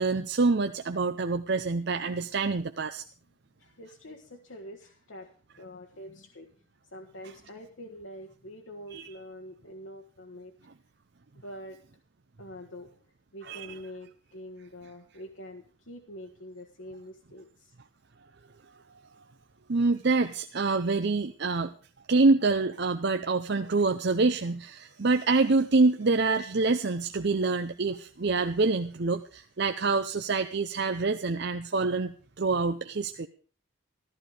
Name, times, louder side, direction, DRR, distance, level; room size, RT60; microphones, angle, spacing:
voice 1, 0.0-3.0 8.9-9.1 13.5-13.7 19.7-21.7 22.1-33.3, right 3 dB, 50° right, 7 dB, 0.6 m, -26 dB
voice 2, 3.6-6.5 6.9-10.5 11.3-11.8 12.4-17.8, equal, 70° left, 2 dB, 1.5 m, -45 dB
14.5 x 13.5 x 5.0 m, 0.39 s
head